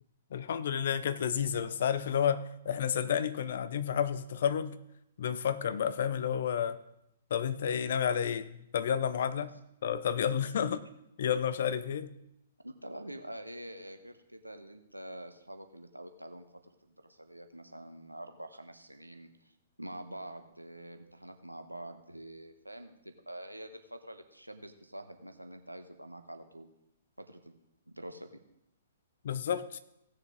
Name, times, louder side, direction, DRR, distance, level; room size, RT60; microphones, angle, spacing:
voice 1, 0.3-4.8 5.2-6.8 7.3-9.5 9.8-10.8 11.2-12.1 29.2-29.8, left 8 dB, 55° left, 0.7 m, -31 dB
voice 2, 12.6-19.5 19.8-26.7 27.2-27.6 27.9-28.3, right 1 dB, 90° right, 1.1 m, -46 dB
16.5 x 6.6 x 3.8 m
figure-of-eight pair, 115°, 0 cm